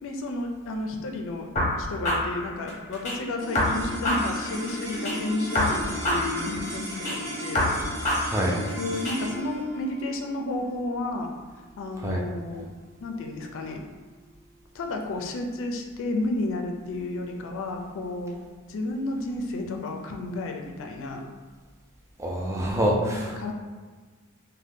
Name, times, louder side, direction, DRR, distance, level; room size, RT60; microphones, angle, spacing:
voice 1, 0.0-7.7 8.8-11.3 11.8-12.7 13.0-13.8 14.7-18.4 18.7-21.3 23.1-23.5, left 2 dB, 60° left, 3 dB, 0.4 m, -32 dB
sound 1, 1.6-3.2 3.5-5.2 5.5-7.2 7.5-9.2, left 1 dB, 30° left, 0.8 m, -27 dB
sound 2, 3.4-13.8, right 1 dB, 85° right, 1.1 m, -36 dB
voice 2, 8.2-8.5 12.0-12.2 22.2-23.5, equal, 15° right, -2 dB, 0.4 m, -26 dB
2.7 x 2.1 x 3.4 m, 1.4 s
head